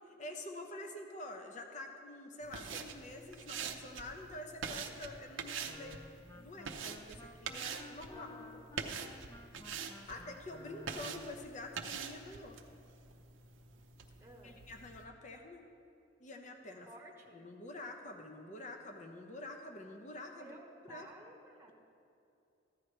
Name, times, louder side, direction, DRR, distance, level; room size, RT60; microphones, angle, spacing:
voice 1, 0.2-6.0 6.3-8.3 10.1-12.6 14.4-15.7 16.2-16.9 17.3-20.5 20.9-21.1, left 2 dB, 40° left, 4 dB, 0.8 m, -47 dB
sound 1, 2.4-15.0, right 6 dB, 80° right, 0.7 m, -45 dB
Wind instrument woodwind instrument, 5.6-11.4, left 2 dB, 15° left, 0.5 m, -54 dB
voice 2, 8.1-8.7 10.1-10.3 14.2-14.6 16.8-17.4 20.4-20.6 20.9-21.7, right 2 dB, 15° right, -1 dB, 1.1 m, -55 dB
14.5 x 10.5 x 3.3 m, 2.7 s
head